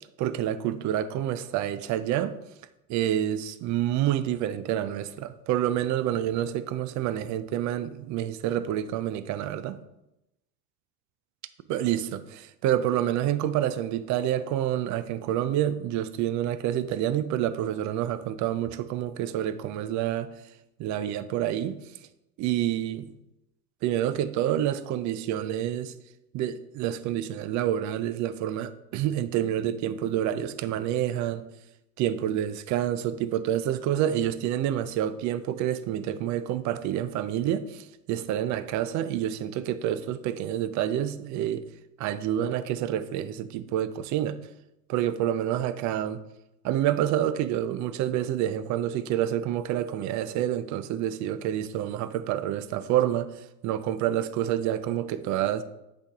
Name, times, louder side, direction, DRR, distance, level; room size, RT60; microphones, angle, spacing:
voice 1, 0.2-2.4 2.9-9.8 11.7-20.3 20.8-21.8 22.4-23.1 23.8-25.9 26.3-31.4 32.0-41.6 42.0-44.4 44.9-46.2 46.6-55.6, right 11 dB, 40° right, 0.5 m, -28 dB
8.1 x 3.3 x 3.5 m
hypercardioid pair, 95°, 45 cm